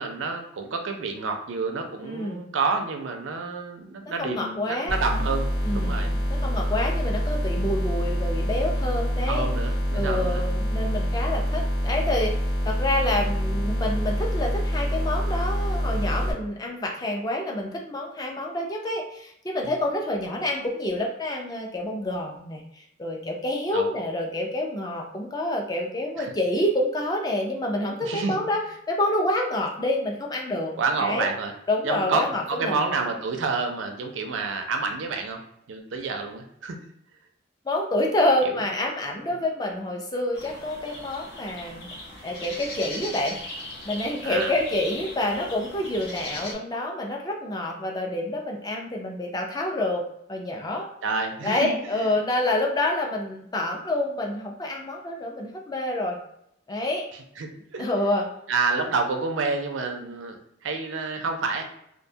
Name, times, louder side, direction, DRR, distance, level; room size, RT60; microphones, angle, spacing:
voice 1, 0.0-6.1 9.3-10.4 19.6-19.7 23.7-23.9 26.2-26.3 28.0-28.4 30.8-31.5 31.8-35.4 35.7-36.8 38.5-38.6 39.3-39.4 44.2-44.5 51.0-51.7 57.4-57.8 58.5-61.6, right 4 dB, 85° right, 5 dB, 0.5 m, -29 dB
voice 2, 2.0-2.4 4.0-5.0 5.6-9.5 9.9-12.3 12.6-30.7 31.0-31.3 31.7-32.8 37.7-41.9 42.2-43.4 43.9-50.0 50.3-50.9 51.4-56.2 56.7-57.1 57.8-58.3, left 1 dB, 20° left, 0 dB, 0.4 m, -28 dB
sound 1, 4.9-16.3, equal, 85° left, 1.1 m, -26 dB
sound 2, 40.3-46.5, left 1 dB, 60° left, 0.7 m, -38 dB
2.5 x 2.2 x 2.7 m, 0.75 s
head